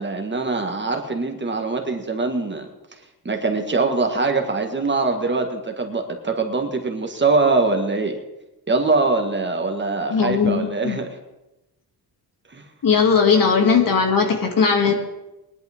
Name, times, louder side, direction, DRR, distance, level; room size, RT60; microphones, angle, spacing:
voice 1, 0.0-2.7 3.2-8.2 8.7-11.1 12.5-12.6, right 3 dB, 30° right, 4 dB, 1.7 m, -23 dB
voice 2, 10.1-11.0 12.8-14.9, left 5 dB, 55° left, 2 dB, 2.4 m, -18 dB
20.0 x 11.0 x 3.6 m, 0.97 s
cardioid pair, 110°, 39 cm